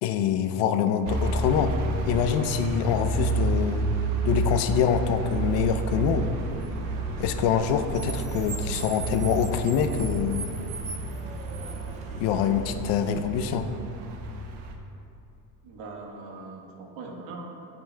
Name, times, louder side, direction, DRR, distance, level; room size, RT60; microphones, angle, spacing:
voice 1, 0.0-1.8 2.1-3.9 4.2-6.3 7.2-10.5 12.2-13.7, left 8 dB, 75° left, 8 dB, 0.6 m, -25 dB
sound 1, 1.0-14.8, right 2 dB, 70° right, 0.8 m, -30 dB
Car, 5.2-12.7, right 2 dB, 20° right, 0.4 m, -40 dB
voice 2, 15.6-17.5, right 3 dB, 85° right, 0 dB, 1.3 m, -41 dB
14.5 x 5.3 x 2.2 m, 2.7 s
cardioid pair, 175°, 42 cm